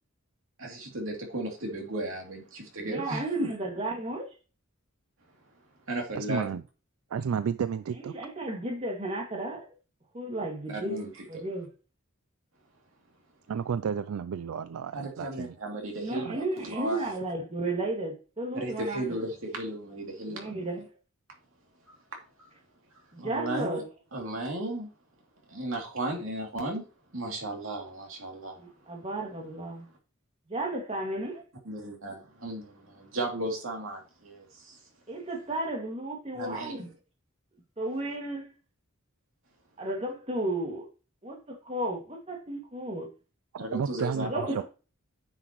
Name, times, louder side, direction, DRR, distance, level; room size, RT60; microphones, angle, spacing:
voice 1, 0.6-3.5 5.9-6.4 10.7-11.4 14.9-17.0 18.5-20.5 21.9-22.0 23.2-23.8 24.1-24.9 25.5-26.8 27.1-28.6 31.6-34.8 36.3-36.8 43.6-44.3, right 1 dB, 65° right, 2.8 m, -35 dB
voice 2, 2.8-4.3 8.0-9.6 10.1-11.7 15.9-19.0 20.3-20.8 23.1-23.8 28.6-29.8 30.5-31.4 35.1-36.9 37.8-38.5 39.8-40.8 41.2-43.1 44.2-44.6, right 2 dB, 30° right, 2.1 m, -33 dB
voice 3, 6.1-6.6 7.1-8.1 13.5-15.6 16.2-16.4 43.5-44.6, right 7 dB, 80° right, 0.4 m, -32 dB
9.7 x 5.8 x 3.0 m
head